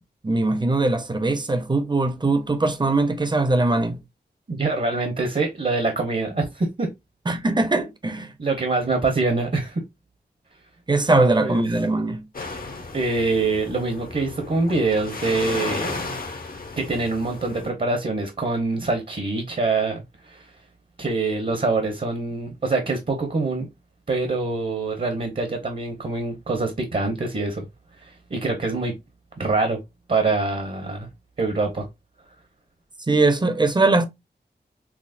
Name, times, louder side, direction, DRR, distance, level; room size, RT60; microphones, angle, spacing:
voice 1, 0.2-4.0 7.3-8.3 10.9-12.2 33.1-34.0, right 2 dB, 25° right, 0.7 m, -21 dB
voice 2, 4.5-6.9 8.4-9.8 11.1-11.6 12.9-16.2 16.8-20.5 21.0-23.7 24.1-27.7 28.0-28.9 29.4-29.8 30.1-31.1 31.4-31.9, right 3 dB, 50° right, 0.9 m, -25 dB
sound 1, 12.3-17.7, left 3 dB, 55° left, 0.8 m, -34 dB
5.8 x 2.0 x 2.4 m
wide cardioid pair, 85°, 18 cm